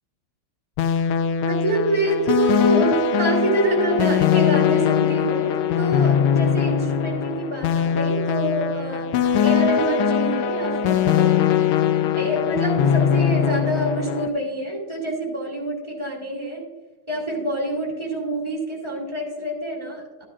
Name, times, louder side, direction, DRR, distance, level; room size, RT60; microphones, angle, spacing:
sound 1, 0.8-14.3, left 8 dB, 85° left, 1.5 m, -21 dB
voice 1, 1.4-9.1 9.4-11.5 12.1-16.6 17.1-20.2, right 1 dB, 15° right, -3 dB, 2.7 m, -26 dB
12.5 x 10.5 x 2.5 m, 1.1 s
omnidirectional pair, 2.3 m